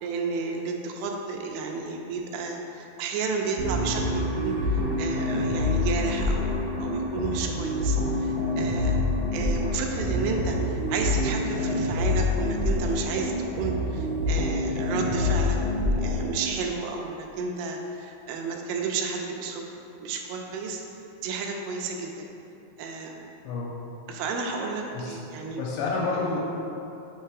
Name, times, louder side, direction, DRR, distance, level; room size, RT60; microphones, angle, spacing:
voice 1, 0.0-6.5 6.8-9.0 9.3-15.6 16.0-19.7 20.0-20.8 21.2-22.3 22.8-23.2 24.1-25.6, right 4 dB, 85° right, 1 dB, 2.8 m, -32 dB
sound 1, 3.6-16.4, left 2 dB, 65° right, 2.4 m, -26 dB
voice 2, 8.9-9.2 23.4-23.8 24.9-25.2 25.6-26.4, left 3 dB, 85° left, -5 dB, 2.8 m, -30 dB
6.7 x 3.1 x 4.7 m, 2.8 s
omnidirectional pair, 5.1 m